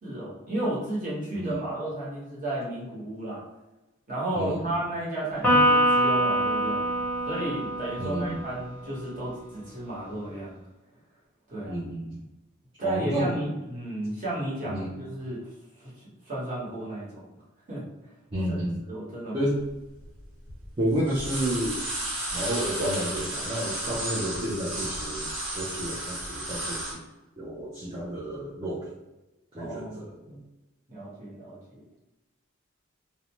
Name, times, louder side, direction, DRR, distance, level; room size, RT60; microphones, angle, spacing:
voice 1, 0.0-3.4 4.1-6.9 7.3-10.6 11.5-11.8 12.8-15.4 15.8-17.3 17.7-17.9 18.5-18.6 18.9-19.4 29.5-30.1 30.9-31.8, right 1 dB, 40° right, -7 dB, 1.2 m, -33 dB
voice 2, 4.3-4.7 8.0-8.4 11.6-12.2 12.8-13.3 14.7-14.9 18.3-18.8 19.3-19.6 20.8-21.8 22.3-27.0 27.4-29.0 29.5-30.4, right 1 dB, 25° right, -7 dB, 0.5 m, -31 dB
Electric guitar, 5.4-9.0, equal, 10° left, 0.7 m, -24 dB
sound 1, 19.7-19.8 20.0-20.7 20.9-26.9, right 1 dB, 60° right, 1.5 m, -33 dB
2.6 x 2.1 x 2.9 m, 1.0 s
head